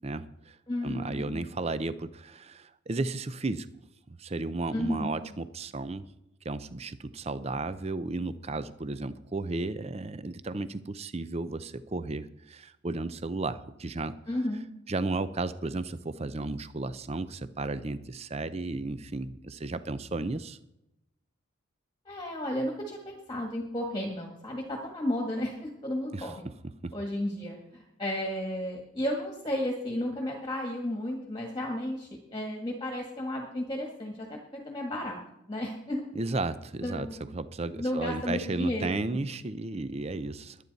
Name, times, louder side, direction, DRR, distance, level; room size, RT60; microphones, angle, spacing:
voice 1, 0.0-0.6 0.8-3.7 4.1-6.0 6.4-14.2 14.9-20.6 26.1-26.3 26.8-26.9 36.1-37.1 37.3-40.6, right 2 dB, 30° right, 13 dB, 0.5 m, -34 dB
voice 2, 0.7-1.5 4.7-5.1 14.3-14.7 22.1-26.5 26.9-35.2 35.5-36.1 36.8-37.3 37.8-39.2, left 1 dB, 20° left, 1 dB, 1.6 m, -33 dB
21.5 x 9.2 x 4.1 m, 0.86 s
head